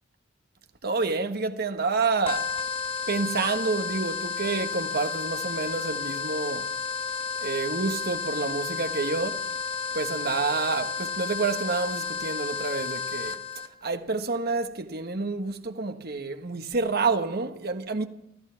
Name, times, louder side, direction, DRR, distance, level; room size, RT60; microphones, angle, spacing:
voice 1, 0.8-2.5 3.1-6.7 7.4-9.4 9.9-13.4 13.8-18.0, right 4 dB, 55° right, 1.3 m, -28 dB
sound 1, 2.3-13.7, left 5 dB, 30° left, 1.1 m, -32 dB
16.0 x 14.5 x 5.8 m
head